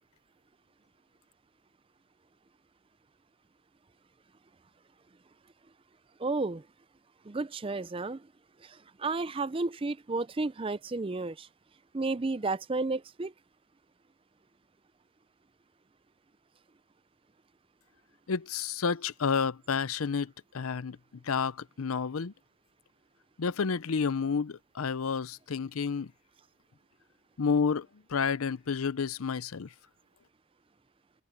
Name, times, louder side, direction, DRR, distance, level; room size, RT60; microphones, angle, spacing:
voice 1, 6.2-6.7 7.2-8.3 8.6-11.5 11.9-13.3, right 3 dB, 25° right, 0.5 m, -32 dB
voice 2, 18.3-21.0 21.2-22.3 23.4-26.1 27.4-29.7, left 5 dB, 90° left, 0.6 m, -30 dB
open air
head